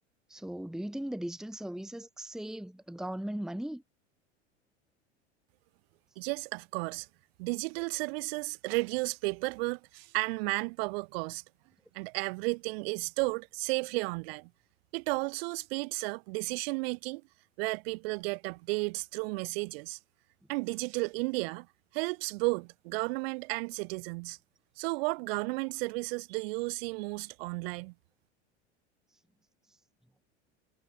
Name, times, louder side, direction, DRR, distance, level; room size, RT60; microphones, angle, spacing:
voice 1, 0.3-3.8, right 1 dB, ahead, 1.5 m, -38 dB
voice 2, 6.2-7.1 7.4-11.4 11.9-14.5 14.9-17.2 17.6-20.0 20.5-21.7 21.9-24.4 24.8-27.9, right 28 dB, 60° right, 3.4 m, -33 dB
figure-of-eight pair, 80°, 34 cm